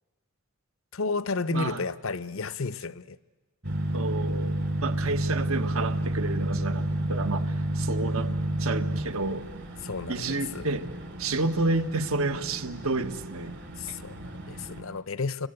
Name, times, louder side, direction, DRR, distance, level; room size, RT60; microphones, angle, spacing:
voice 1, 0.9-3.2 9.8-10.7 13.8-15.5, left 4 dB, 70° left, 0.8 m, -32 dB
voice 2, 1.5-1.8 3.9-4.5 4.8-8.3 8.6-9.5 10.1-10.9 11.2-13.5, right 3 dB, 80° right, 1.5 m, -30 dB
sound 1, 3.6-14.8, right 1 dB, 55° right, 2.8 m, -31 dB
29.5 x 24.5 x 8.1 m
head